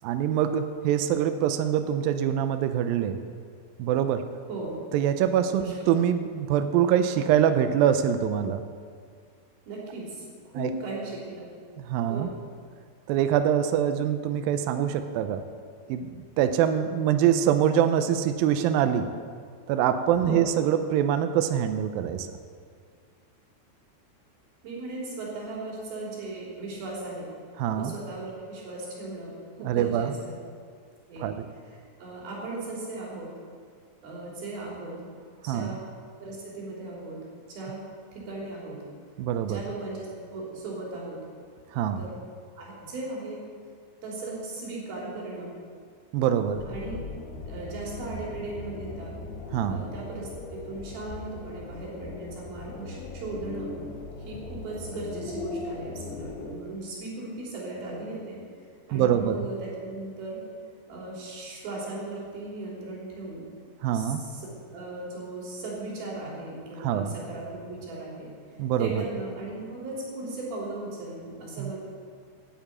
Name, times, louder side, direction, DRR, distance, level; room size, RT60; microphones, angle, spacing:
voice 1, 0.0-3.2 3.8-4.3 4.9-8.6 10.6-10.7 11.9-12.3 13.1-15.5 15.9-19.1 19.7-22.3 27.6-27.9 29.6-30.1 31.2-31.4 35.5-35.8 39.2-39.6 41.7-42.0 46.1-46.6 49.5-49.8 58.9-59.5 63.8-64.2 66.8-67.1 68.6-69.0 71.6-71.7, right 9 dB, 85° right, 9 dB, 2.1 m, -24 dB
voice 2, 9.7-11.5 12.1-12.3 20.2-20.4 24.6-27.3 27.8-29.3 29.6-30.3 31.1-31.3 31.6-33.3 34.0-35.0 35.4-35.8 36.2-37.2 37.5-37.8 38.1-38.8 39.4-41.2 42.0-42.1 42.6-43.4 44.0-45.5 46.6-47.0 47.5-49.1 49.7-53.7 54.3-58.4 58.9-60.4 60.9-63.4 63.9-68.3 68.8-71.8, right 2 dB, 60° right, -5 dB, 5.0 m, -37 dB
sound 1, 46.6-56.6, left 3 dB, 75° left, 2.9 m, -39 dB
10.5 x 9.1 x 8.6 m, 2.1 s
omnidirectional pair, 4.9 m